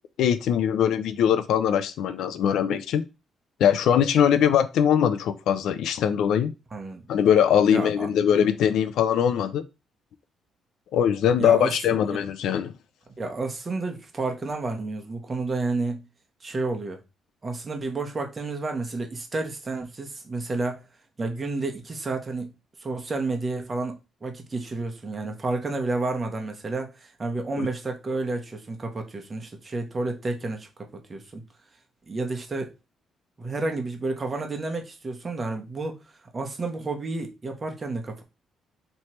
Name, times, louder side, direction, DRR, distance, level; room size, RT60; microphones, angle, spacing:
voice 1, 0.2-3.1 3.6-6.5 7.1-9.6 10.9-12.7 27.6-27.7, left 9 dB, 80° left, 0.4 m, -21 dB
voice 2, 6.7-7.0 7.7-8.1 11.4-11.7 13.2-16.0 16.4-17.0 17.4-20.8 21.2-22.5 22.8-31.4 32.1-32.7 33.4-38.2, right 3 dB, 30° right, 1.1 m, -30 dB
3.2 x 3.0 x 4.3 m
cardioid pair, 90°, 0 cm